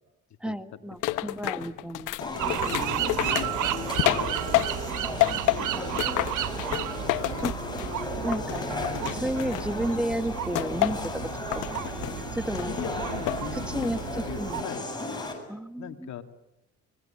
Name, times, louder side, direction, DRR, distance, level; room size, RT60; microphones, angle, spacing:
voice 1, 0.4-2.1 5.7-6.0 7.4-7.5 8.2-8.7 9.1-11.1 11.5-12.0 12.3-12.8 13.5-14.6 15.5-16.1, right 1 dB, 5° right, 10 dB, 1.8 m, -32 dB
sound 1, 1.0-4.9 5.2-8.0 8.3-9.9 10.5-11.1 11.5-12.2 12.5-13.4 13.8-14.2, left 18 dB, 90° left, 1.0 m, -29 dB
sound 2, 2.2-15.3, left 2 dB, 15° left, 7.6 m, -35 dB
sound 3, 2.4-14.6, right 12 dB, 80° right, 1.2 m, -33 dB
voice 2, 2.7-4.7 5.2-6.3 7.0-8.3 9.3-9.6 12.7-14.9 15.8-16.2, left 9 dB, 65° left, 7 dB, 2.4 m, -40 dB
25.0 x 22.5 x 8.9 m, 0.92 s
cardioid pair, 80°, 30 cm